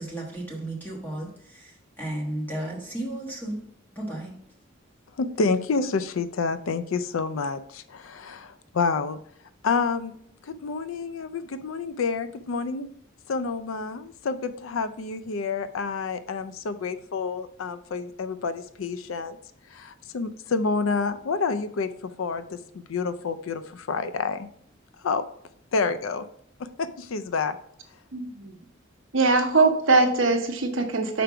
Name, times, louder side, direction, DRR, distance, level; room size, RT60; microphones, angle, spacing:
voice 1, 0.0-3.6 3.9-4.4, right 1 dB, 10° left, -3 dB, 1.3 m, -34 dB
voice 2, 5.2-9.2 9.6-10.1 10.4-12.9 13.3-19.4 19.7-24.5 25.0-25.2 25.7-26.3 26.8-27.6, left 4 dB, 90° left, 11 dB, 0.4 m, -28 dB
voice 3, 28.1-28.6 29.1-31.2, right 3 dB, 75° right, 5 dB, 0.9 m, -22 dB
5.1 x 4.5 x 4.9 m, 0.67 s
head